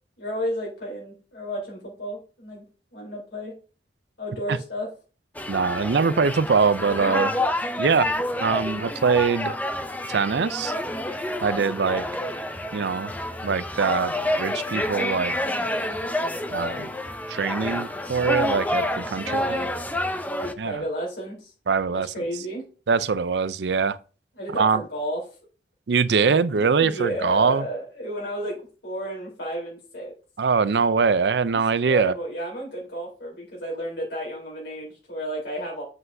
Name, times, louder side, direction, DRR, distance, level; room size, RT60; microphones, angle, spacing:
voice 1, 0.2-3.5 4.2-4.9 19.2-19.7 20.3-21.5 21.9-22.6 24.4-25.2 26.2-30.1 31.9-35.8, equal, 75° left, 3.7 m, -32 dB
sound 1, 5.3-20.5, left 1 dB, 10° left, 0.5 m, -28 dB
voice 2, 5.5-7.3 7.8-8.1 8.4-9.5 10.1-10.7 11.4-12.0 12.7-13.1 13.4-15.4 16.5-16.9 17.3-19.4 20.6-20.8 21.7-22.1 22.9-24.0 24.5-24.8 25.9-27.7 30.4-32.1, right 5 dB, 70° right, 0.5 m, -23 dB
7.8 x 7.8 x 2.7 m
head